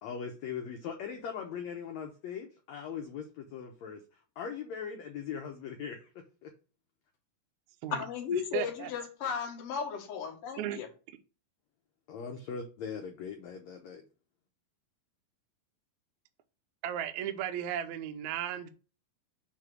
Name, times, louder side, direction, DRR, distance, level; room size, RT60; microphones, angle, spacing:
voice 1, 0.0-4.0 4.4-6.1 6.4-6.5 12.1-14.0, left 7 dB, 80° left, 1.6 m, -40 dB
voice 2, 7.9-10.9, left 7 dB, 50° left, 2.0 m, -35 dB
voice 3, 8.5-8.9 10.6-10.8 11.1-11.2 16.8-18.7, right 10 dB, 85° right, 1.6 m, -35 dB
6.4 x 3.4 x 6.1 m
omnidirectional pair, 4.2 m